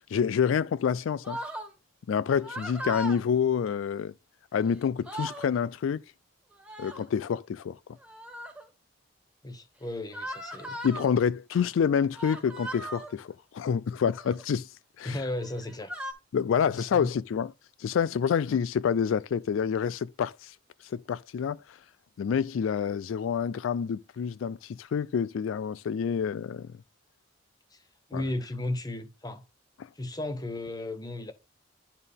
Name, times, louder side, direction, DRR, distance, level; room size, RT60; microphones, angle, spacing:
voice 1, 0.1-1.4 2.1-4.1 4.5-6.0 6.8-7.8 10.8-14.7 15.0-15.2 16.3-17.5 17.8-20.5 20.9-21.6 22.2-26.7 28.1-28.2, left 7 dB, 90° left, 0.3 m, -27 dB
sound 1, 1.2-1.7 2.4-3.2 4.5-4.6 4.9-5.5 6.5-7.1 8.0-8.6 10.1-11.1 12.1-13.1 14.0-14.4 15.4-16.1, equal, 5° right, 1.5 m, -38 dB
voice 2, 9.4-10.8 15.0-15.9 16.7-17.1 27.7-27.8 28.1-29.4 29.9-31.3, left 1 dB, 20° left, 0.9 m, -35 dB
10.5 x 4.4 x 3.5 m
head